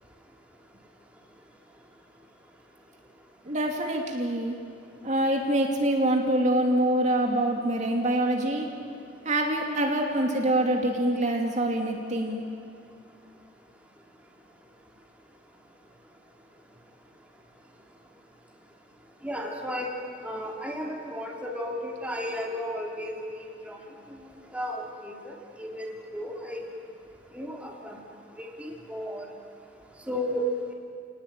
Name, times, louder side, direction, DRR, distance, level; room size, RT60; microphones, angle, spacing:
voice 1, 3.5-4.6 5.0-8.7 9.2-12.4, right 1 dB, 40° right, 1 dB, 2.7 m, -25 dB
voice 2, 19.2-19.9 20.2-23.8 24.5-25.3 25.6-26.6 27.3-28.0 28.4-29.3 30.1-30.4, left 1 dB, 5° right, -1 dB, 3.3 m, -34 dB
30.0 x 19.5 x 9.1 m, 2.5 s
head